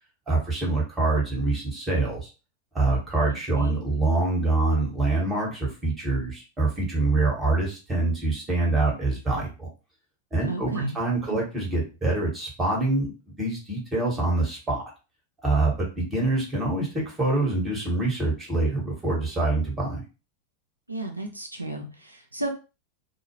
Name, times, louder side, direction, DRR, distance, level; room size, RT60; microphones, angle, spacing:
voice 1, 0.3-2.3 2.7-9.7 10.3-14.8 15.4-20.0, right 2 dB, 15° right, -3 dB, 1.2 m, -25 dB
voice 2, 10.5-11.0 11.3-11.4 20.9-22.5, right 2 dB, 85° right, 3 dB, 0.5 m, -33 dB
2.3 x 2.2 x 3.0 m, 0.31 s
figure-of-eight pair, 90°, 0 cm